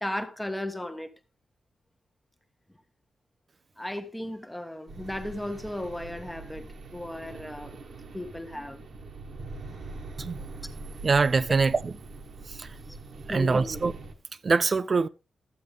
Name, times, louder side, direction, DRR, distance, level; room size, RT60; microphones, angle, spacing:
voice 1, 0.0-1.1 3.8-7.8 8.1-8.8 13.3-13.8, left 1 dB, 5° left, 1.1 m, -35 dB
sound 1, 4.9-14.1, right 3 dB, 70° right, 1.4 m, -43 dB
voice 2, 11.0-11.9 12.5-12.7 13.3-13.9 14.4-15.1, right 4 dB, 45° right, 0.5 m, -24 dB
12.0 x 8.0 x 3.5 m
cardioid pair, 70°, 0 cm